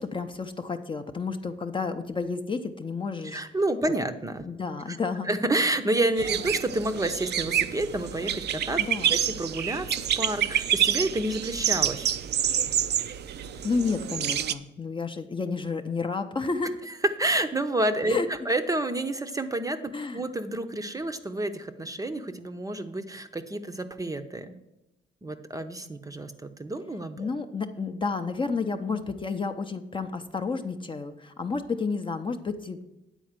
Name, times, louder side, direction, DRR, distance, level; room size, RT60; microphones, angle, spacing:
voice 1, 0.0-3.4 4.4-5.3 8.8-9.2 13.6-16.8 18.1-18.3 19.9-20.2 27.2-32.8, left 4 dB, 25° left, 7 dB, 0.6 m, -31 dB
voice 2, 3.2-4.4 4.9-5.0 5.2-8.8 9.1-12.1 17.2-18.2 18.5-24.5 25.2-27.3, right 1 dB, 15° right, 8 dB, 0.7 m, -29 dB
sound 1, 6.2-14.5, right 10 dB, 60° right, 0.5 m, -28 dB
9.0 x 4.2 x 7.3 m, 0.94 s
cardioid pair, 90°, 20 cm